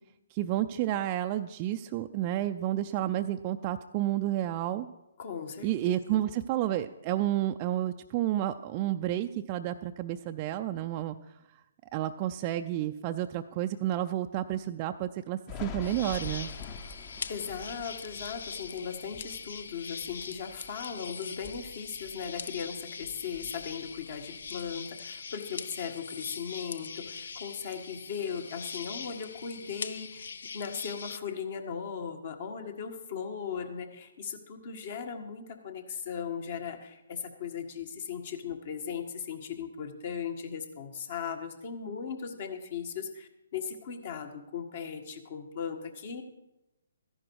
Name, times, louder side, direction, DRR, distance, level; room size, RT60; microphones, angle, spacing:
voice 1, 0.3-4.9 5.6-11.2 11.9-16.5, right 13 dB, 30° right, 6 dB, 0.4 m, -30 dB
voice 2, 5.2-5.9 17.3-30.3 30.5-46.2, left 7 dB, 50° left, 6 dB, 1.5 m, -38 dB
Thunder, 15.5-20.9 21.3-22.7 23.0-24.7, left 5 dB, 30° left, 0.9 m, -46 dB
sound 1, 15.8-31.2, left 5 dB, 65° left, 0.5 m, -42 dB
13.5 x 11.0 x 4.7 m, 0.92 s
figure-of-eight pair, 140°, 0 cm